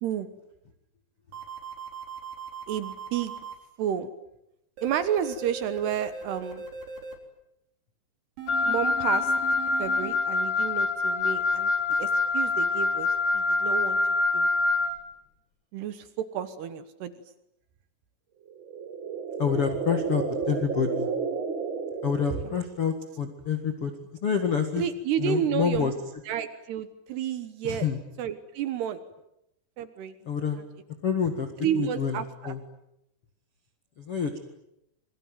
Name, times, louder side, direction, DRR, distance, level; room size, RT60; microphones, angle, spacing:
sound 1, 1.3-3.5 4.8-7.2 8.4-10.1, right 5 dB, 90° right, 6.4 m, -39 dB
voice 1, 2.7-3.3 3.8-4.1 4.8-6.6 8.6-9.3 9.8-11.7 12.0-14.0 14.3-14.5 15.7-17.1 22.4-22.5 24.8-25.9 26.3-27.9 28.2-29.0 29.8-30.2 31.6-32.5, right 9 dB, 70° right, 11 dB, 3.1 m, -31 dB
Wind instrument woodwind instrument, 8.5-14.9, left 3 dB, 85° left, 1.0 m, -25 dB
sound 2, 18.5-22.9, right 5 dB, 40° right, 1.8 m, -32 dB
voice 2, 19.4-21.1 22.0-23.9 24.2-24.8 25.2-25.9 27.6-28.0 30.3-30.6 31.0-31.5 31.7-32.6 34.0-34.4, left 7 dB, 45° left, 6 dB, 2.0 m, -27 dB
27.0 x 23.5 x 9.2 m, 0.82 s
omnidirectional pair, 5.2 m